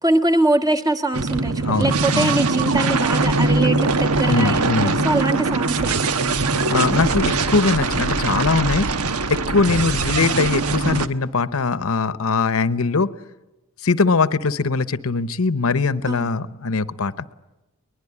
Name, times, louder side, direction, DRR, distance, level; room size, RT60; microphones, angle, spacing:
voice 1, 0.0-6.1 16.0-16.3, right 2 dB, 15° right, 6 dB, 1.5 m, -22 dB
sound 1, 1.1-11.1, right 3 dB, 85° right, 1.1 m, -21 dB
voice 2, 1.6-2.4 4.3-5.1 6.7-8.9 9.3-13.1 13.8-17.1, left 4 dB, 65° left, 15 dB, 0.9 m, -21 dB
22.5 x 21.0 x 9.8 m, 0.99 s
head